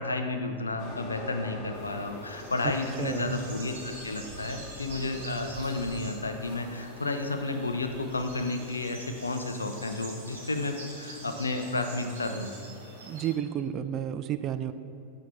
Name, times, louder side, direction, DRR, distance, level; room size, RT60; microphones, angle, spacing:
voice 1, 0.0-12.5, left 2 dB, 80° left, 6 dB, 0.5 m, -32 dB
sound 1, 0.8-12.5, left 2 dB, 40° left, 0.9 m, -47 dB
sound 2, 1.7-13.3, right 2 dB, 60° right, 1.5 m, -46 dB
voice 2, 3.0-3.4 13.0-14.7, right 10 dB, 35° right, 11 dB, 0.3 m, -31 dB
5.9 x 4.4 x 5.3 m, 2.6 s
figure-of-eight pair, 90°, 0 cm